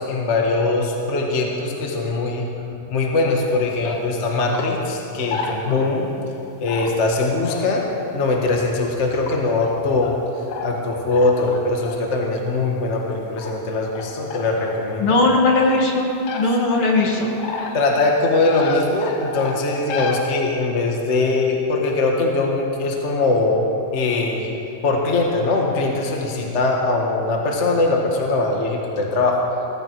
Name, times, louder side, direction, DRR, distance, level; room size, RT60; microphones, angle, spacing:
voice 1, 0.0-2.5 2.9-6.1 6.6-7.8 8.1-10.1 10.6-15.2 17.7-23.7 23.9-24.5 24.8-29.4, left 3 dB, 30° left, 0 dB, 1.3 m, -21 dB
sound 1, 3.8-4.0 4.5-4.7 5.1-6.0 6.7-6.9 7.4-7.8 8.2-8.3 9.3-9.7 10.0-10.2 10.5-10.7 11.1-12.0 13.4-13.5 14.0-14.7 15.2-15.7 16.3-16.5 17.0-17.8 18.0-18.2 18.5-20.2, left 5 dB, 85° left, 2.7 m, -31 dB
voice 2, 15.0-16.1 16.4-17.3, left 2 dB, 50° left, 0 dB, 2.2 m, -18 dB
19.0 x 15.5 x 4.7 m, 2.7 s
omnidirectional pair, 3.5 m